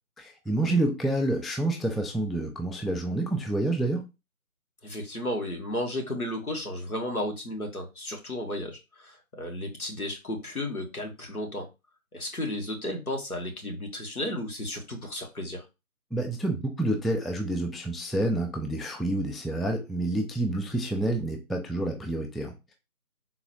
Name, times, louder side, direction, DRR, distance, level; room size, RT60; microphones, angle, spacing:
voice 1, 0.2-4.0 16.1-22.7, right 1 dB, ahead, 3 dB, 0.3 m, -28 dB
voice 2, 4.8-11.7 12.1-15.6, left 1 dB, 75° left, 2 dB, 1.3 m, -33 dB
3.8 x 2.4 x 3.0 m, 0.26 s
figure-of-eight pair, 165°, 44 cm